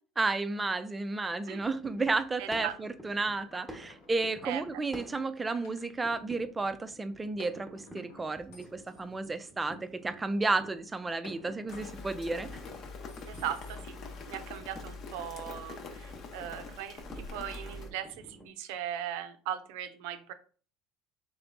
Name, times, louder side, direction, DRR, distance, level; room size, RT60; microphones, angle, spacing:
voice 1, 0.2-12.5, right 3 dB, 15° right, 0.5 m, -32 dB
sound 1, 1.6-18.5, equal, 5° left, 1.1 m, -52 dB
voice 2, 2.4-2.8 4.4-4.6 13.3-14.0 14.3-20.3, right 10 dB, 80° right, 0.6 m, -38 dB
sound 2, 3.3-5.9 7.4-10.0 11.2-14.1, left 3 dB, 80° left, 1.1 m, -55 dB
Rain, 11.7-17.9, left 3 dB, 50° left, 0.9 m, -44 dB
3.4 x 3.4 x 3.9 m
supercardioid pair, 100°, 0 cm